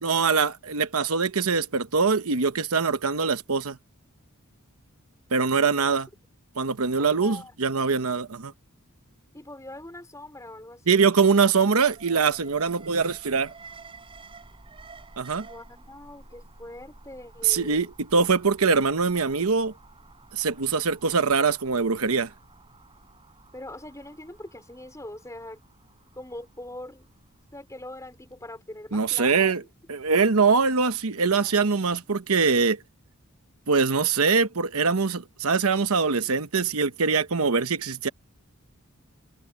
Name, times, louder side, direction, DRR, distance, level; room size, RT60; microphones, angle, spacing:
voice 1, 0.0-3.8 5.3-6.1 6.6-8.5 10.9-13.5 15.2-15.5 17.4-19.7 20.3-22.3 28.9-29.6 29.9-32.8 33.7-38.1, right 5 dB, 80° right, 1.0 m, -23 dB
voice 2, 7.0-7.5 9.3-11.0 15.4-17.9 23.5-25.6 26.1-27.1 27.5-29.7, left 1 dB, 15° left, 5.2 m, -42 dB
Alarm, 11.8-27.9 28.2-28.3, right 3 dB, 25° right, 4.3 m, -51 dB
head